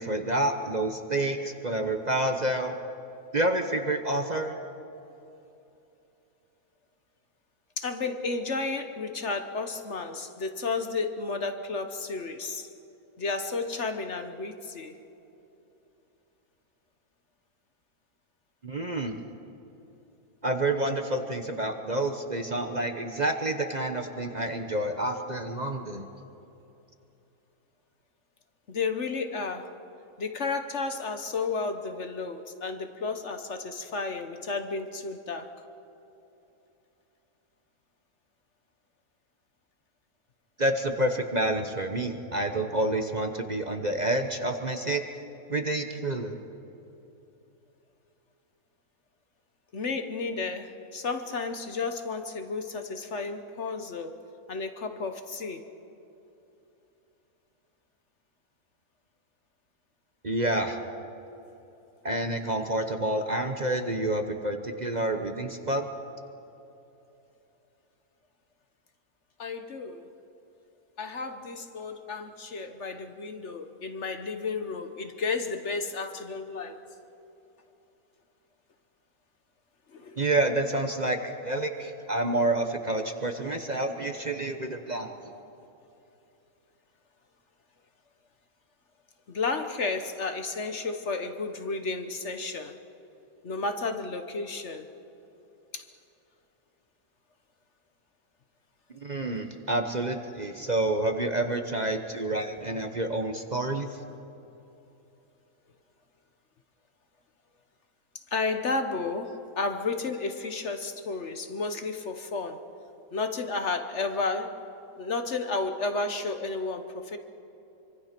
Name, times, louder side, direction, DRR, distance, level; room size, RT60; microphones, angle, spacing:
voice 1, 0.0-2.7 3.3-4.6 18.6-19.2 20.4-26.1 40.6-45.0 45.5-46.4 60.2-60.8 62.0-65.9 80.2-85.1 99.0-103.9, right 1 dB, 30° right, 5 dB, 1.1 m, -28 dB
voice 2, 7.8-12.7 13.2-15.0 28.7-29.7 30.2-35.5 49.7-54.2 54.5-55.7 69.4-70.1 71.0-76.8 79.9-80.2 89.3-92.7 93.4-94.9 95.7-95.9 108.3-112.6 113.1-114.6 115.0-117.2, left 4 dB, 50° left, 7 dB, 1.3 m, -32 dB
25.5 x 25.0 x 6.0 m, 2.9 s
omnidirectional pair, 1.6 m